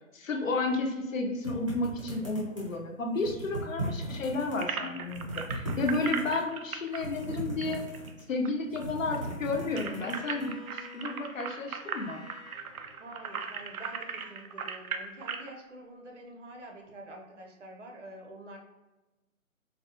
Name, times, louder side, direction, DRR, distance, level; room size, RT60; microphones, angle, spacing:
voice 1, 0.1-7.8 8.3-12.2, left 3 dB, 65° left, 2 dB, 0.8 m, -32 dB
sound 1, 1.4-2.8 3.1-4.6 5.0-6.4 6.9-8.3 8.6-10.4, right 1 dB, 25° right, 0.7 m, -37 dB
sound 2, 4.6-8.5 8.8-8.9 9.1-15.5, right 6 dB, 90° right, 0.5 m, -38 dB
Bowed string instrument, 9.5-14.4, left 4 dB, 25° left, 0.7 m, -51 dB
voice 2, 13.0-18.6, right 1 dB, 60° right, 1 dB, 0.8 m, -47 dB
4.0 x 2.1 x 2.8 m, 1.1 s
hypercardioid pair, 165°, 41 cm